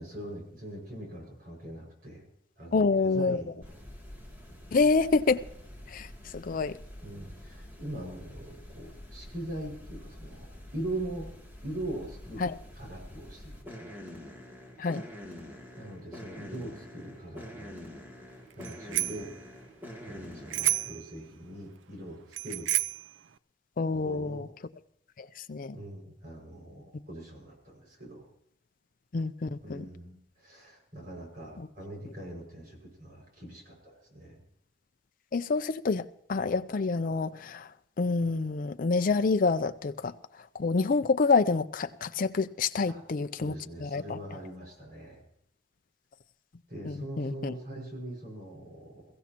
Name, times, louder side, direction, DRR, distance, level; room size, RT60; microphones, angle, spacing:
voice 1, 0.0-2.3 2.6-3.8 4.5-4.9 7.0-11.3 11.6-13.9 15.8-17.9 18.2-18.3 18.6-19.3 20.0-22.7 23.9-24.5 25.7-28.3 29.6-34.4 42.9-43.0 43.3-45.3 46.7-49.1, right 1 dB, 55° right, 5.7 m, -42 dB
voice 2, 2.7-3.4 4.7-5.4 5.9-6.1 6.3-6.8 12.4-12.5 14.8-15.0 23.8-24.5 25.2-25.8 29.1-29.8 35.3-37.7 38.0-40.1 40.5-43.5 43.8-44.2 46.8-47.5, left 4 dB, 50° left, 0.5 m, -27 dB
sound 1, 3.6-21.0, left 1 dB, 10° right, 2.6 m, -46 dB
Bicycle bell, 18.6-19.3 20.5-21.1 22.3-23.1, right 13 dB, 85° right, 0.4 m, -30 dB
22.0 x 15.0 x 2.9 m
head